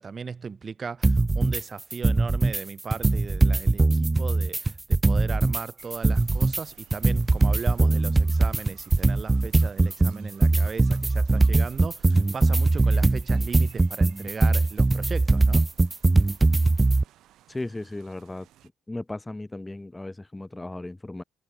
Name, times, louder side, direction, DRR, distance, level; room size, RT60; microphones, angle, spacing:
voice 1, 0.0-15.7, right 5 dB, 35° right, 1.9 m, -37 dB
sound 1, 1.0-1.6 1.9-2.6 2.9-5.6 5.9-17.0, right 2 dB, 20° right, 0.9 m, -21 dB
sound 2, 5.8-18.7, right 13 dB, 55° right, 6.6 m, -56 dB
voice 2, 17.5-18.5 18.9-21.2, left 2 dB, 15° left, 2.7 m, -36 dB
figure-of-eight pair, 45°, 0 cm